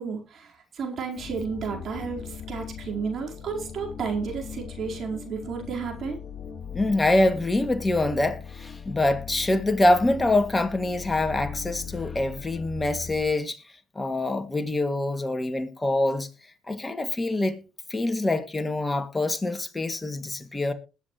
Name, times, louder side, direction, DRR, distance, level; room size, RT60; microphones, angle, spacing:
voice 1, 0.0-6.2, right 5 dB, 55° right, 4.5 m, -32 dB
sound 1, 1.2-13.3, left 7 dB, 45° left, 3.8 m, -39 dB
voice 2, 6.7-13.6 14.0-16.3 16.7-17.6 17.9-20.7, left 2 dB, 20° left, 2.4 m, -25 dB
21.0 x 8.2 x 3.2 m
hypercardioid pair, 60°, 0 cm